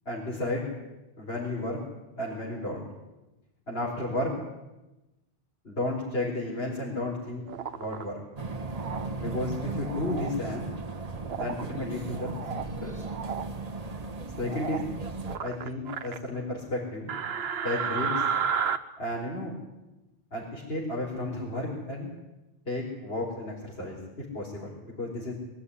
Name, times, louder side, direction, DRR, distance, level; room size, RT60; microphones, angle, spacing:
voice 1, 0.1-0.7 1.2-1.8 2.2-2.9 3.7-4.3 5.6-7.4 7.7-8.2 9.2-10.7 11.3-12.3 12.8-13.0 14.4-14.8 15.4-17.1 17.6-18.2 19.0-19.5 20.3-22.1 22.7-24.0 24.3-25.3, left 1 dB, 80° left, -5 dB, 4.6 m, -32 dB
sound 1, 7.5-8.0 8.7-9.1 9.8-10.3 11.2-11.6 12.1-12.7 13.0-13.5 14.4-14.9 15.3-16.2 17.1-18.8, right 7 dB, 80° right, 1.1 m, -32 dB
sound 2, 8.4-15.4, right 3 dB, 40° right, 1.4 m, -36 dB
22.0 x 13.5 x 10.0 m, 1.0 s
omnidirectional pair, 1.0 m